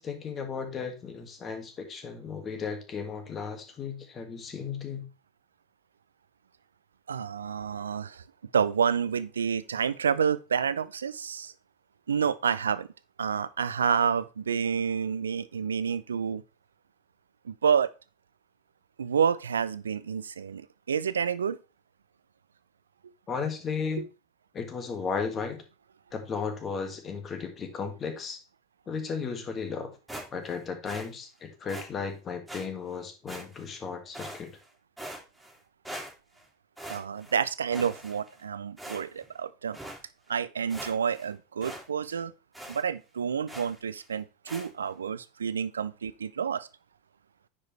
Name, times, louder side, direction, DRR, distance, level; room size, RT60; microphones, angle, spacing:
voice 1, 0.0-5.1 23.3-24.1 24.5-25.6 26.1-28.4 28.9-30.0 30.3-34.5, left 5 dB, 30° left, 1.9 m, -35 dB
voice 2, 7.1-8.2 8.5-11.5 12.1-12.9 13.2-16.4 17.5-17.9 19.0-21.6 24.0-24.1 36.9-39.8 40.3-42.3 42.7-46.7, right 7 dB, 80° right, 0.5 m, -29 dB
sound 1, 30.1-30.6 30.8-31.1 31.7-31.9 32.5-32.6 33.3-33.7 34.1-34.7 35.0-35.6 35.8-36.4 36.8-37.4 37.7-38.4 38.8-39.3 39.7-40.0 40.4-40.5 40.7-41.3 41.6-41.8 42.1-42.2 42.5-42.8 43.5-43.8 44.5-44.7, right 1 dB, 5° right, 2.7 m, -42 dB
9.6 x 5.1 x 3.2 m
hypercardioid pair, 80°, 0 cm